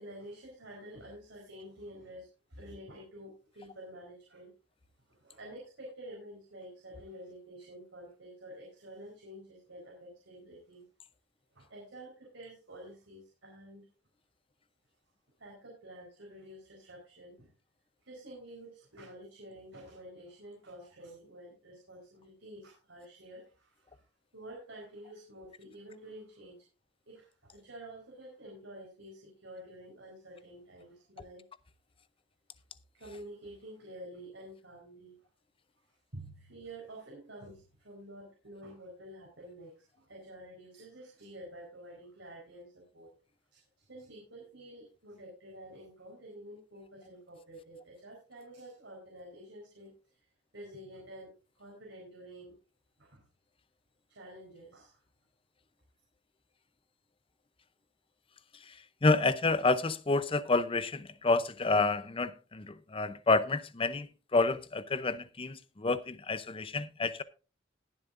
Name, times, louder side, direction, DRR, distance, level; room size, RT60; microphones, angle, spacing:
voice 1, 0.0-4.5 5.1-10.9 11.5-13.9 15.4-17.5 18.0-24.1 24.3-26.6 27.1-31.4 32.9-35.2 35.8-35.9 36.1-43.1 43.5-50.2 50.5-52.6 53.0-53.2 54.1-55.0, right 1 dB, 75° right, 4.4 m, -49 dB
voice 2, 59.0-67.2, left 3 dB, 30° left, 0.7 m, -29 dB
21.0 x 7.3 x 2.6 m
head